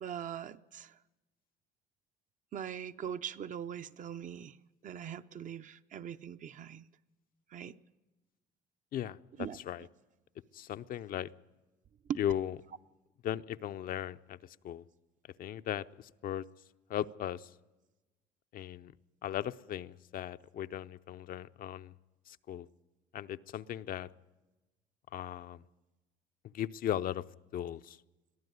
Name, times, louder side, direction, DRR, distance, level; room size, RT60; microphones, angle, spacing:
voice 1, 0.0-0.9 2.5-4.6 4.8-6.8 7.5-7.7 9.4-9.6 12.1-12.2, right 9 dB, 50° right, 0.7 m, -41 dB
voice 2, 8.9-9.9 10.5-11.3 12.2-12.6 13.2-14.8 15.4-16.4 16.9-17.5 18.5-18.9 19.2-22.0 22.3-22.7 23.1-24.1 25.1-25.6 26.4-27.2 27.5-28.0, left 11 dB, 60° left, 0.6 m, -37 dB
22.0 x 14.0 x 9.4 m
cardioid pair, 110°, 17 cm